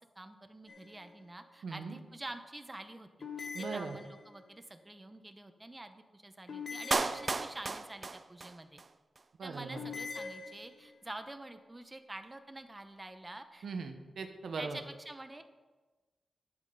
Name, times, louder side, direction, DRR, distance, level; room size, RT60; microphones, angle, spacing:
voice 1, 0.2-8.8 9.4-13.7 14.6-15.4, right 2 dB, 20° right, 8 dB, 0.8 m, -47 dB
sound 1, 0.7-1.3 3.2-4.5 6.5-7.8 9.7-11.0, left 4 dB, 60° left, 1.1 m, -44 dB
voice 2, 1.6-2.0 3.5-4.0 9.4-9.8 13.6-14.8, right 4 dB, 80° right, 7 dB, 0.9 m, -39 dB
Clapping, 6.9-8.9 9.2-9.3, right 3 dB, 40° right, 0.4 m, -34 dB
11.0 x 7.7 x 3.9 m, 1.3 s
wide cardioid pair, 100°, 0 cm